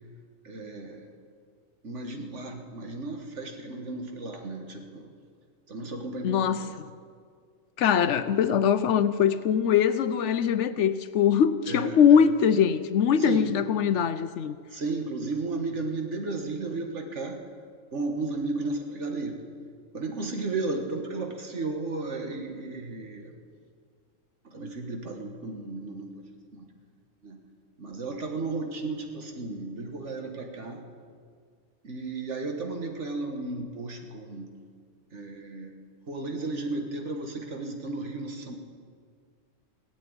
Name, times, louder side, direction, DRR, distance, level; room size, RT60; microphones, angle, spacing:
voice 1, 0.4-1.1 1.8-5.1 5.7-6.8 11.7-12.2 13.2-13.5 14.7-17.4 17.9-19.4 19.9-23.3 24.4-26.3 26.5-26.7 27.2-27.4 27.8-30.8 31.8-34.5 35.1-35.7 36.1-38.6, right 3 dB, 60° right, 3 dB, 1.9 m, -34 dB
voice 2, 6.2-6.9 7.8-14.6, left 8 dB, 70° left, 13 dB, 0.9 m, -22 dB
17.5 x 7.6 x 9.5 m, 2.1 s
omnidirectional pair, 1.4 m